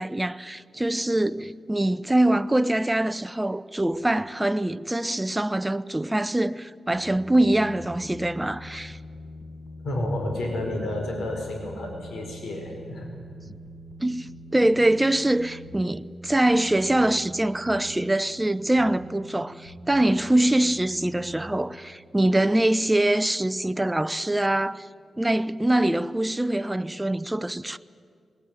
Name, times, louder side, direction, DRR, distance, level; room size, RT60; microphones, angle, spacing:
voice 1, 0.0-9.0 14.0-24.9 25.2-27.8, right 1 dB, 15° right, 0.6 m, -24 dB
sound 1, 6.9-21.5, equal, 10° left, 4.9 m, -43 dB
voice 2, 9.8-13.1, left 1 dB, 80° left, 4.9 m, -30 dB
20.0 x 20.0 x 9.1 m
cardioid pair, 95°, 0 cm